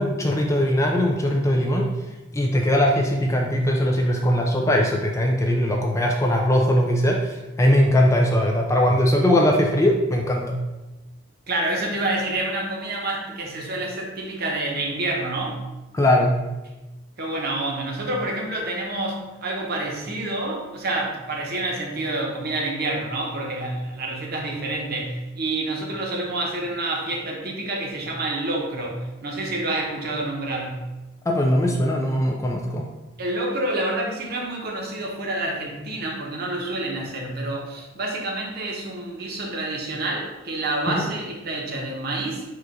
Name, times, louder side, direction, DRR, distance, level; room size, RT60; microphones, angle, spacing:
voice 1, 0.0-1.9 2.3-10.6 15.9-16.4 31.3-32.9 40.9-41.1, left 1 dB, 15° left, 1 dB, 0.3 m, -20 dB
voice 2, 11.5-15.6 17.2-30.9 33.2-42.4, right 2 dB, 50° right, -1 dB, 0.9 m, -28 dB
4.6 x 2.4 x 4.7 m, 1.1 s
head